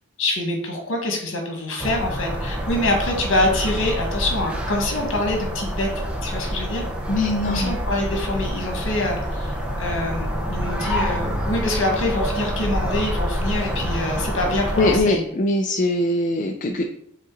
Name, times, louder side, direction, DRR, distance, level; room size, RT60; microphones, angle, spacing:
voice 1, 0.2-6.8 7.4-15.2, left 1 dB, 60° left, 1 dB, 1.6 m, -25 dB
sound 1, 1.8-15.0, equal, 5° right, 0.7 m, -27 dB
voice 2, 7.1-7.7 14.8-16.8, left 2 dB, 35° left, 3 dB, 0.4 m, -21 dB
6.4 x 3.9 x 3.9 m, 0.74 s
head